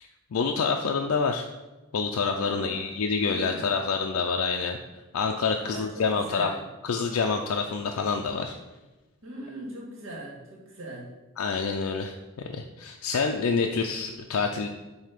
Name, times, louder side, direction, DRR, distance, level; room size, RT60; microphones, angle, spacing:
voice 1, 0.3-1.5 1.9-4.8 5.1-6.5 6.8-8.5 11.4-14.7, left 5 dB, 80° left, 3 dB, 0.4 m, -27 dB
voice 2, 2.4-2.9 3.2-3.8 5.6-6.6 9.2-11.1, right 1 dB, 65° right, -3 dB, 1.9 m, -40 dB
7.4 x 2.8 x 5.1 m, 1.1 s
head